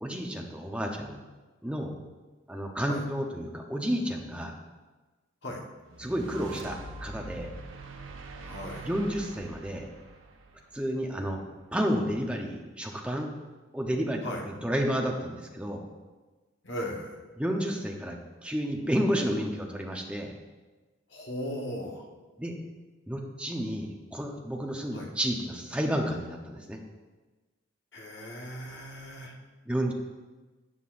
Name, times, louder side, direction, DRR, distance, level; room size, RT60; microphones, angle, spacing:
voice 1, 0.0-1.2 1.6-1.9 2.5-4.6 6.0-7.5 8.9-9.9 10.7-11.4 11.7-13.3 13.7-15.8 17.4-20.3 22.4-22.5 23.1-26.8 29.7-29.9, equal, 5° right, 1 dB, 0.8 m, -31 dB
sound 1, 5.9-11.2, right 2 dB, 85° right, 1.0 m, -44 dB
voice 2, 8.4-8.9 14.2-14.5 16.6-17.3 21.1-22.1 24.9-25.1 27.9-29.3, equal, 60° left, 0 dB, 1.4 m, -37 dB
12.5 x 8.2 x 2.6 m, 1.3 s
head